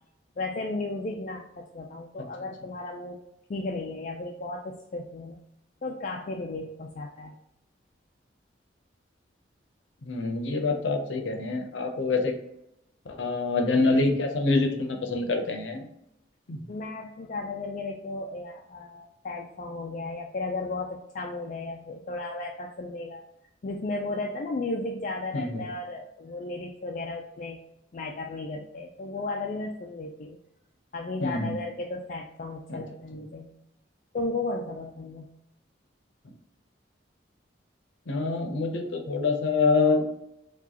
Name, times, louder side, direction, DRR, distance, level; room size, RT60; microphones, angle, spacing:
voice 1, 0.4-3.2 3.5-5.4 5.8-7.4 16.7-23.2 23.6-27.6 27.9-30.4 30.9-33.5 34.1-35.3, left 2 dB, 45° left, 1 dB, 0.3 m, -34 dB
voice 2, 10.0-12.3 13.2-15.8 16.5-16.6 25.3-25.6 31.2-31.5 32.7-32.8 38.1-40.0, left 3 dB, 80° left, 4 dB, 0.7 m, -26 dB
4.7 x 2.3 x 2.8 m, 0.82 s
head